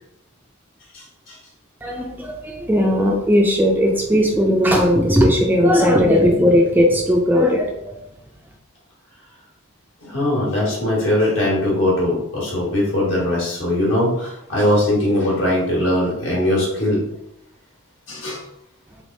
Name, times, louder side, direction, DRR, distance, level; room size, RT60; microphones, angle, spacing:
voice 1, 0.9-1.4 10.0-17.0 18.1-18.4, left 1 dB, 65° left, -5 dB, 1.4 m, -20 dB
voice 2, 1.8-8.0, equal, 10° right, 0 dB, 0.3 m, -17 dB
3.4 x 2.9 x 2.6 m, 0.82 s
head